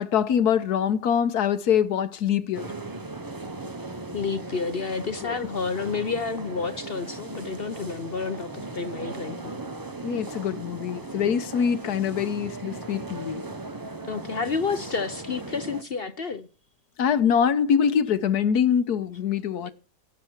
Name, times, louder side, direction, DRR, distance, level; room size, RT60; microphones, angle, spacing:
voice 1, 0.0-2.7 5.2-5.3 10.0-13.5 17.0-19.7, left 8 dB, 70° left, 1.3 m, -24 dB
sound 1, 2.5-15.8, right 2 dB, 25° right, 0.5 m, -38 dB
voice 2, 4.1-9.6 14.1-16.5 19.6-19.7, left 5 dB, 50° left, 0.7 m, -30 dB
17.0 x 7.5 x 4.5 m
omnidirectional pair, 1.9 m